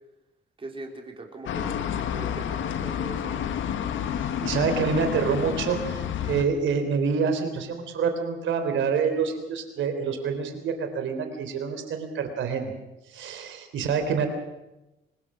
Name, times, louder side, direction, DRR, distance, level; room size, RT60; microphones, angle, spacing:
voice 1, 0.6-3.5, right 2 dB, 25° right, 1 dB, 4.0 m, -41 dB
sound 1, 1.5-6.4, left 9 dB, 75° left, 1.6 m, -30 dB
voice 2, 4.1-12.7 13.1-14.3, right 6 dB, 75° right, 7 dB, 3.6 m, -27 dB
24.0 x 20.0 x 6.2 m, 0.98 s
cardioid pair, 90°, 20 cm